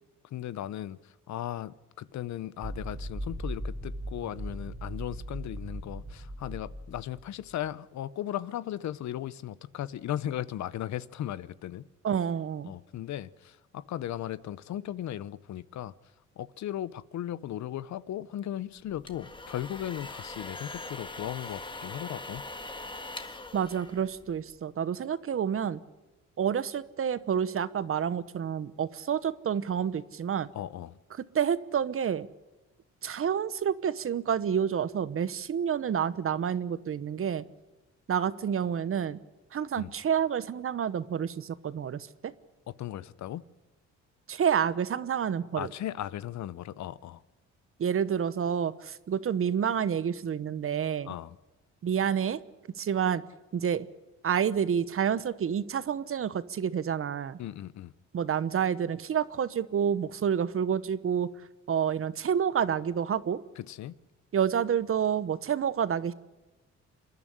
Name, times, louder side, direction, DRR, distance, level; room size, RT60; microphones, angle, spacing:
voice 1, 0.3-1.0 1.3-11.8 12.7-15.9 16.4-22.4 30.5-30.9 39.8-39.9 42.8-43.4 45.5-47.2 51.1-51.4 57.4-57.9 63.6-63.9, left 12 dB, 65° left, 18 dB, 0.8 m, -37 dB
sound 1, 2.6-7.4, right 1 dB, 15° right, 2.6 m, -38 dB
voice 2, 12.0-12.7 23.5-25.8 26.4-30.5 31.2-32.3 33.0-37.4 38.1-39.2 39.5-42.3 44.3-45.7 47.8-51.1 51.8-52.4 52.8-53.2 53.5-53.9 54.2-57.4 58.1-61.3 61.7-63.4 64.3-66.1, right 8 dB, 45° right, 16 dB, 1.0 m, -29 dB
sound 2, 18.8-24.6, left 2 dB, 15° left, 1.6 m, -42 dB
27.5 x 11.0 x 10.0 m, 1.1 s
cardioid pair, 90°, 30 cm